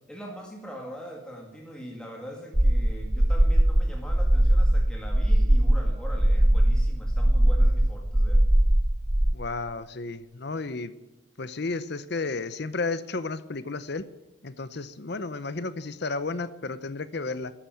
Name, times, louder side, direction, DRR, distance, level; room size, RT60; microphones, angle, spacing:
voice 1, 0.1-8.4, equal, 5° left, -1 dB, 2.1 m, -42 dB
sound 1, 2.5-9.3, right 1 dB, 10° right, 0.5 m, -21 dB
voice 2, 9.3-10.9 11.4-14.1 14.4-17.5, left 3 dB, 55° left, 14 dB, 0.8 m, -32 dB
13.5 x 10.0 x 9.2 m, 1.0 s
head